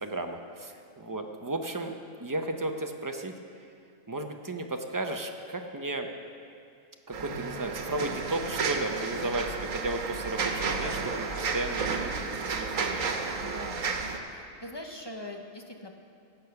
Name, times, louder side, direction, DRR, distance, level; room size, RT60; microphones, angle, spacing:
voice 1, 0.0-3.3 4.1-6.1 7.1-13.0, right 2 dB, 20° right, 4 dB, 0.6 m, -34 dB
sound 1, 7.1-14.2, right 4 dB, 90° right, 1.4 m, -32 dB
voice 2, 13.4-13.9 14.3-16.0, left 1 dB, 25° left, 2 dB, 0.8 m, -42 dB
16.0 x 8.4 x 5.8 m, 2.4 s
omnidirectional pair, 1.3 m